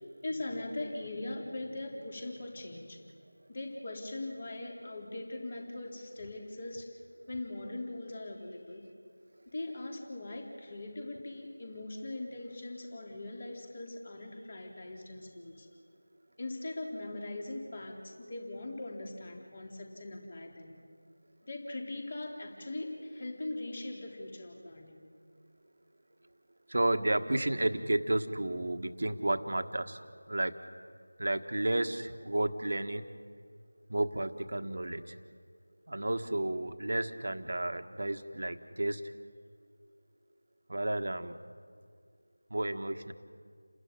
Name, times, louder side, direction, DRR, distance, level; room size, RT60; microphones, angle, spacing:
voice 1, 0.2-3.1 3.5-7.0 7.3-8.9 9.5-15.7 16.4-20.8 21.4-25.0, left 2 dB, 35° left, 1 dB, 3.7 m, -41 dB
voice 2, 26.7-30.0 30.3-30.6 31.2-33.1 33.9-35.2 35.9-39.1 40.7-41.4 42.5-43.1, right 1 dB, 55° right, 8 dB, 1.5 m, -32 dB
29.5 x 13.0 x 9.6 m, 2.1 s
figure-of-eight pair, 170°, 0 cm